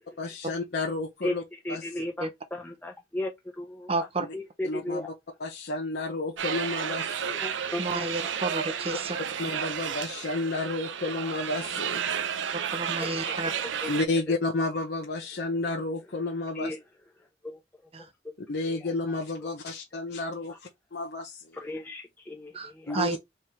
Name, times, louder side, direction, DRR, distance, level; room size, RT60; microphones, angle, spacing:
voice 1, 0.2-1.4 1.7-2.0 4.6-5.1 5.4-7.4 9.4-12.2 13.9-16.8 18.5-21.6 22.9-23.1, left 2 dB, 60° left, 0.9 m, -31 dB
voice 2, 1.6-3.3 3.6-3.9 4.3-5.1 7.4-8.1 13.0-13.9 16.6-16.8 17.4-17.6 21.6-23.0, left 1 dB, 10° left, 0.7 m, -35 dB
voice 3, 3.9-4.3 7.8-9.2 12.7-13.5 17.9-18.1 22.5-23.2, right 3 dB, 30° right, 0.8 m, -31 dB
sound 1, 6.4-14.1, right 8 dB, 80° right, 0.5 m, -32 dB
3.7 x 3.2 x 4.3 m
head